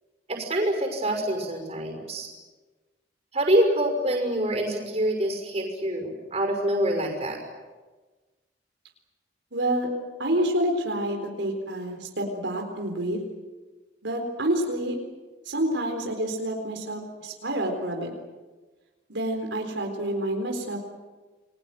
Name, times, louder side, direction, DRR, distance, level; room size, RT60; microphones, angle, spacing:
voice 1, 0.3-2.3 3.3-7.4, right 1 dB, 35° right, 3 dB, 6.0 m, -26 dB
voice 2, 9.5-9.9 10.2-13.2 14.0-15.0 15.5-18.1 19.1-20.8, right 1 dB, 85° right, 2 dB, 4.1 m, -28 dB
29.5 x 22.0 x 7.8 m, 1.3 s
head